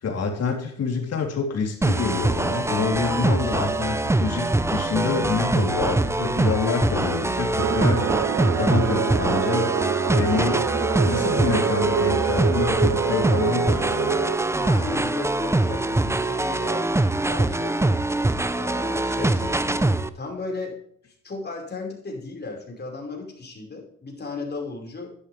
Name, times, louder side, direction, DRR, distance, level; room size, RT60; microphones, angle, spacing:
voice 1, 0.0-8.1 8.6-9.8 10.1-10.7 11.1-14.2 19.7-19.9, left 5 dB, 55° left, 2 dB, 3.5 m, -27 dB
sound 1, 1.8-20.1, right 2 dB, 10° right, 0.7 m, -23 dB
sound 2, 7.6-14.4, right 7 dB, 55° right, 1.3 m, -26 dB
voice 2, 14.6-17.9 18.6-20.8 21.2-25.2, left 3 dB, 35° left, 1 dB, 5.3 m, -35 dB
12.0 x 10.5 x 3.5 m, 0.65 s
cardioid pair, 90°, 30 cm